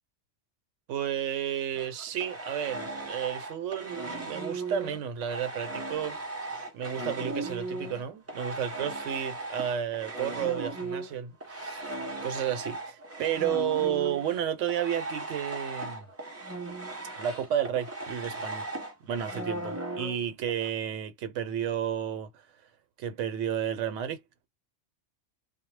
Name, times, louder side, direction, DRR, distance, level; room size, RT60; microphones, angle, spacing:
voice 1, 0.9-11.9 12.2-16.0 17.2-18.7 19.0-22.4 23.0-24.2, right 9 dB, 85° right, 0.9 m, -32 dB
sound 1, 1.7-8.0 8.3-20.7, right 2 dB, 20° right, 0.4 m, -37 dB
2.1 x 2.0 x 3.1 m
omnidirectional pair, 1.2 m